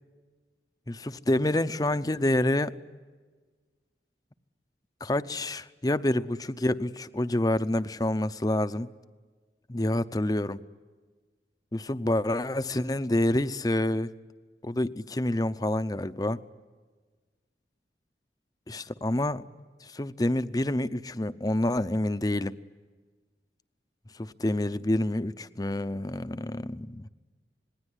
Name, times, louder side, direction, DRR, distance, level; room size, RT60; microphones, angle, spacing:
voice 1, 0.9-2.7 5.0-8.9 9.7-10.6 11.7-14.1 14.6-16.4 18.7-19.4 19.8-22.5 24.2-27.1, left 1 dB, 20° left, 13 dB, 0.7 m, -28 dB
27.0 x 20.5 x 9.8 m, 1.4 s
head